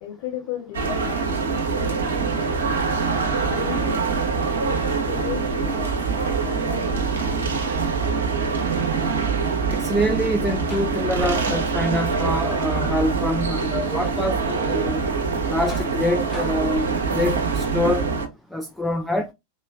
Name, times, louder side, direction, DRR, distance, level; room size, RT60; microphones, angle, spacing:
voice 1, 0.0-2.1 3.5-4.2 4.7-5.9 6.4-7.5, left 11 dB, 50° left, 1.5 m, -35 dB
sound 1, 0.7-18.3, right 4 dB, 65° right, 0.9 m, -24 dB
voice 2, 9.7-15.0 15.5-18.0 18.5-19.3, left 1 dB, 5° left, 0.4 m, -25 dB
sound 2, 10.0-17.7, left 2 dB, 20° left, 0.8 m, -42 dB
4.1 x 3.0 x 2.3 m
figure-of-eight pair, 90°, 0 cm